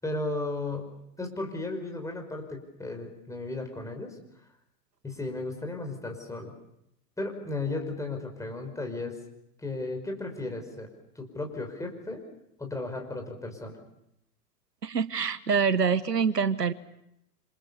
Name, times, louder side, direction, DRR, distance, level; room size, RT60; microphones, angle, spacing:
voice 1, 0.0-0.9 1.2-4.2 5.0-6.5 7.2-9.2 9.6-10.9 11.2-12.2 12.6-13.8, left 2 dB, 5° left, 3 dB, 5.5 m, -35 dB
voice 2, 14.8-16.7, right 6 dB, 85° right, 14 dB, 1.3 m, -25 dB
28.5 x 26.5 x 7.1 m, 0.81 s
figure-of-eight pair, 105°, 47 cm